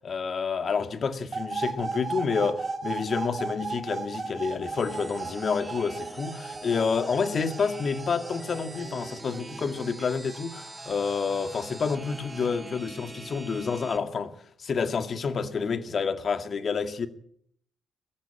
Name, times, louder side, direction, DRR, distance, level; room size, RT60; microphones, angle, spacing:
voice 1, 0.0-14.3 14.6-17.1, left 5 dB, 50° left, 2.2 m, -29 dB
sound 1, 1.3-12.5, right 4 dB, 40° right, 4.4 m, -37 dB
sound 2, 4.8-14.0, right 2 dB, 20° right, 1.8 m, -43 dB
22.0 x 15.5 x 8.6 m
hypercardioid pair, 45°, 0 cm